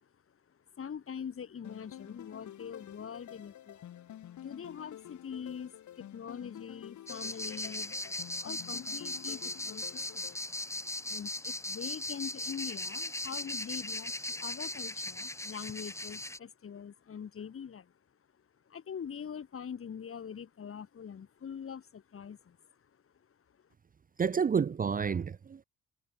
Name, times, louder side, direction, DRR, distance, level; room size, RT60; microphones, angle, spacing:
voice 1, 0.7-3.9 4.4-8.0 8.4-10.4 11.0-17.9 18.7-22.7, left 7 dB, 45° left, 3.1 m, -43 dB
sound 1, 1.6-10.4, left 11 dB, 70° left, 5.3 m, -49 dB
sound 2, 7.1-16.4, left 2 dB, 10° left, 1.2 m, -38 dB
voice 2, 24.2-25.6, right 6 dB, 30° right, 0.6 m, -29 dB
cardioid pair, 90°, 30 cm